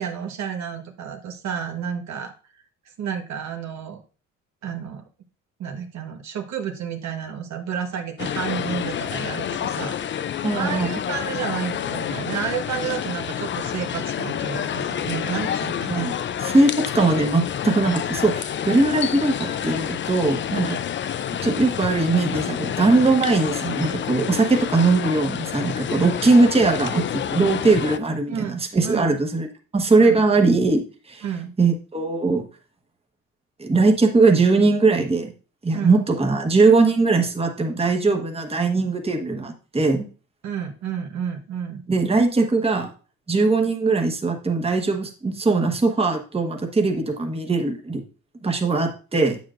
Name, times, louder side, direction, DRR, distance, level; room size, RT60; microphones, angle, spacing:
voice 1, 0.0-2.3 3.0-4.0 4.6-5.0 5.6-16.1 20.8-20.9 28.3-28.5 28.8-29.2 30.0-30.2 31.2-31.5 35.7-36.0 40.4-41.8, right 7 dB, 65° right, 4 dB, 1.2 m, -31 dB
sound 1, 8.2-28.0, left 9 dB, 40° left, 0.4 m, -28 dB
voice 2, 10.4-10.9 15.9-16.1 16.4-20.8 21.4-29.5 29.7-31.2 31.6-32.5 33.6-35.3 35.6-40.1 41.9-42.9 43.3-48.0 48.4-49.4, right 3 dB, 20° right, 3 dB, 1.3 m, -20 dB
7.8 x 7.2 x 2.5 m, 0.36 s
cardioid pair, 90°, 30 cm